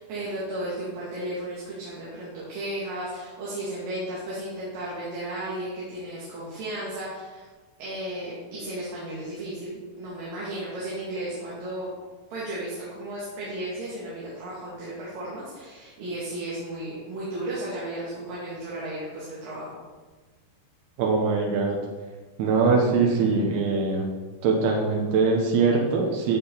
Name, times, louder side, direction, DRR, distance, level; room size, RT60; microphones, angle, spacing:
voice 1, 0.0-7.5 7.8-11.9 12.3-19.7, right 1 dB, 65° right, -8 dB, 3.9 m, -34 dB
voice 2, 21.0-21.8 22.4-24.1 24.4-26.4, right 4 dB, 90° right, 1 dB, 3.1 m, -22 dB
15.0 x 5.9 x 4.0 m, 1.3 s
omnidirectional pair, 4.4 m